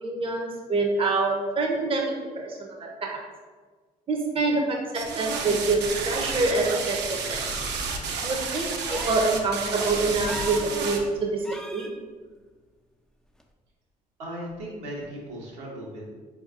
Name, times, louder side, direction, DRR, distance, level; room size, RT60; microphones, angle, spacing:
voice 1, 0.0-3.2 4.1-7.0 7.3-7.4 8.2-11.4 11.7-11.9, right 3 dB, 25° right, 1 dB, 0.7 m, -26 dB
sound 1, 4.9-11.0, right 4 dB, 55° right, 0.6 m, -31 dB
sound 2, 8.9-9.4 10.2-10.7 11.4-11.9 13.4-13.5, left 1 dB, 5° left, 0.4 m, -38 dB
voice 2, 14.2-16.1, right 1 dB, 75° right, -4 dB, 1.0 m, -37 dB
4.5 x 2.7 x 2.5 m, 1.4 s
hypercardioid pair, 50°, 21 cm